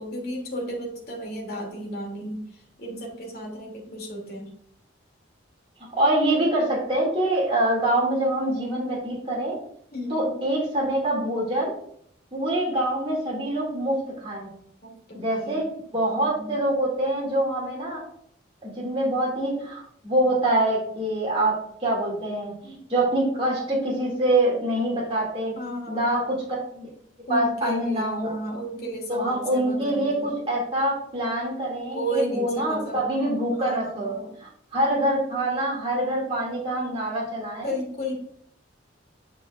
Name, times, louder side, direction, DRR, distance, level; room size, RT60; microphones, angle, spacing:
voice 1, 0.0-2.5 2.8-4.5 9.9-10.3 14.8-15.7 16.1-16.5 25.6-26.4 27.3-30.3 31.9-33.0 33.5-34.3 37.6-38.1, right 1 dB, 50° left, -2 dB, 2.7 m, -33 dB
voice 2, 5.9-9.6 10.1-11.7 12.3-14.5 15.1-15.6 15.9-18.0 18.6-21.5 21.8-25.6 25.9-26.4 26.7-26.9 27.3-28.3 29.1-34.1 34.4-37.7, right 1 dB, 30° right, -5 dB, 2.4 m, -25 dB
9.6 x 6.1 x 2.5 m, 0.66 s
head